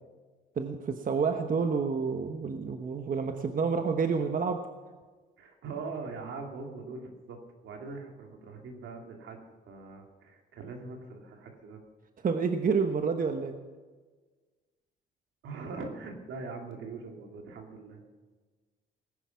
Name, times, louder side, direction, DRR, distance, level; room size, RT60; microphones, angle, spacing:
voice 1, 0.6-4.6 12.2-13.5, right 5 dB, 45° right, 6 dB, 1.1 m, -29 dB
voice 2, 5.4-9.4 9.7-11.8 15.4-18.0, right 4 dB, 75° right, 3 dB, 2.7 m, -42 dB
18.5 x 10.0 x 5.8 m, 1.4 s
cardioid pair, 90°, 20 cm